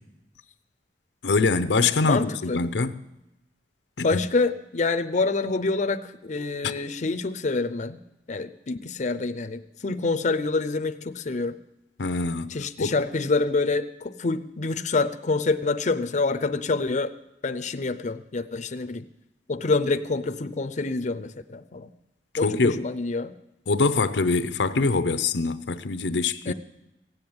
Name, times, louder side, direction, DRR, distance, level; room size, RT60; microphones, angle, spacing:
voice 1, 1.2-3.0 4.0-4.2 12.0-12.9 22.4-22.9 23.7-26.5, left 3 dB, 90° left, 0.7 m, -24 dB
voice 2, 2.0-2.6 4.0-8.0 8.3-11.6 12.5-17.1 17.4-19.0 19.5-21.9 22.4-23.4 26.5-26.6, left 3 dB, 45° left, 0.6 m, -27 dB
16.0 x 7.8 x 8.7 m
head